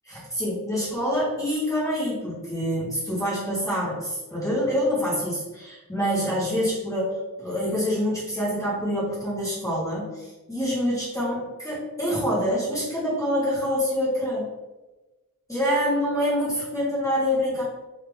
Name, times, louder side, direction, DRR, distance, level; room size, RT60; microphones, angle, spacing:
voice 1, 0.1-14.5 15.5-17.6, equal, 10° left, -9 dB, 1.3 m, -26 dB
3.4 x 2.8 x 3.5 m, 1.1 s
wide cardioid pair, 130°, 35 cm